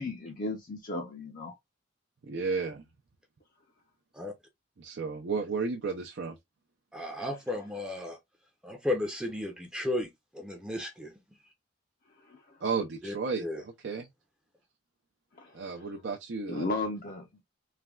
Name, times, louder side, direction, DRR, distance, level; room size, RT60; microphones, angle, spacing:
voice 1, 0.0-1.6 12.2-12.6 15.3-15.9 16.5-17.3, left 2 dB, 45° left, 0.5 m, -35 dB
voice 2, 2.2-2.8 4.8-6.4 12.6-14.1 15.5-16.7, right 4 dB, 65° right, 0.5 m, -33 dB
voice 3, 6.9-8.2 8.6-11.1 13.0-13.6, left 1 dB, 5° right, 0.5 m, -34 dB
3.2 x 2.2 x 2.2 m
head